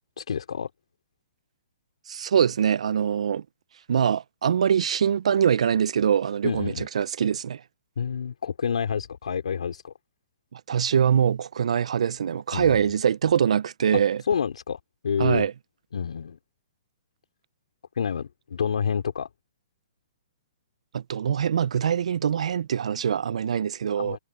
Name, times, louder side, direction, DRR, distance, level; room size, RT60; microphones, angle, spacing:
voice 1, 0.2-0.7 6.4-6.9 8.0-9.9 12.5-12.8 14.3-15.5 15.9-16.4 18.0-19.3 24.0-24.2, left 7 dB, 75° left, 3.3 m, -28 dB
voice 2, 2.1-3.4 3.9-7.6 10.5-14.2 15.2-15.5 20.9-24.2, right 8 dB, 70° right, 0.9 m, -23 dB
hypercardioid pair, 135°, 4 cm